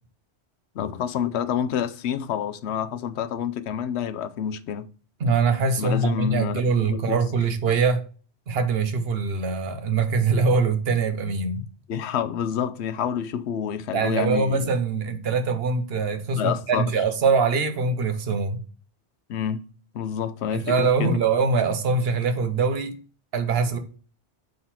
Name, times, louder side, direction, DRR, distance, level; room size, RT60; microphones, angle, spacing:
voice 1, 0.8-4.9 5.8-6.6 6.9-7.2 11.9-14.7 16.4-16.9 19.3-19.6 19.9-21.2, left 8 dB, 75° left, 0.9 m, -28 dB
voice 2, 5.2-8.0 8.5-11.6 13.9-18.6 20.5-23.0 23.3-23.8, right 4 dB, 65° right, 1.1 m, -23 dB
6.4 x 3.8 x 4.3 m
omnidirectional pair, 1.2 m